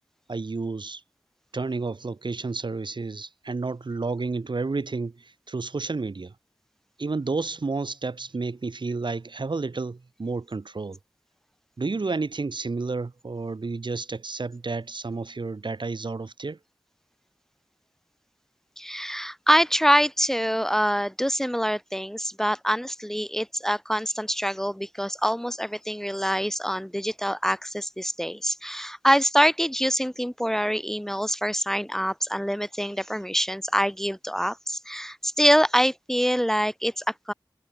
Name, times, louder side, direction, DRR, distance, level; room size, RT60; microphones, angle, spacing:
voice 1, 0.3-1.0 1.5-6.3 7.0-11.0 11.8-16.6, right 3 dB, 65° right, 1.6 m, -31 dB
voice 2, 18.8-37.3, equal, 5° left, 0.9 m, -25 dB
wide cardioid pair, 70°, 8 cm